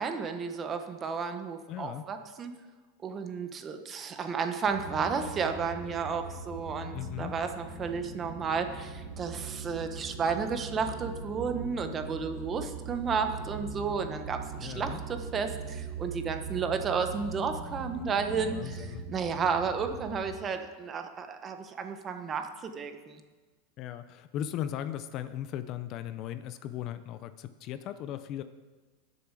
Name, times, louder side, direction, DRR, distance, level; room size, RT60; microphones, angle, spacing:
voice 1, 0.0-2.5 3.0-23.2, right 5 dB, 25° right, 7 dB, 1.1 m, -32 dB
voice 2, 1.7-2.1 6.9-7.4 14.6-15.0 18.3-19.0 23.8-28.4, left 11 dB, 40° left, 12 dB, 0.6 m, -37 dB
sound 1, 4.7-20.2, right 4 dB, 90° right, 3.1 m, -41 dB
19.5 x 7.0 x 4.9 m, 1.3 s
supercardioid pair, 145°, 0 cm